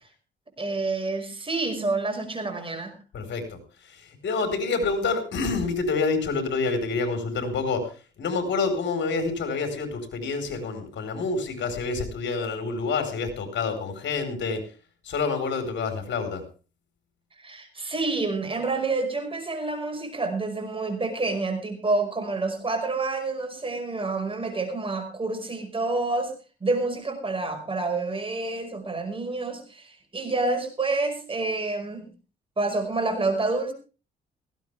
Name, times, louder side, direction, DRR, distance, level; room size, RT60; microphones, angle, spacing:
voice 1, 0.6-2.9 17.4-26.3 26.6-32.1 32.6-33.7, right 3 dB, 25° right, 6 dB, 5.4 m, -28 dB
voice 2, 3.1-14.6 15.0-16.4, left 4 dB, 65° left, 7 dB, 4.7 m, -28 dB
18.5 x 15.5 x 3.5 m, 0.35 s
cardioid pair, 90°, 20 cm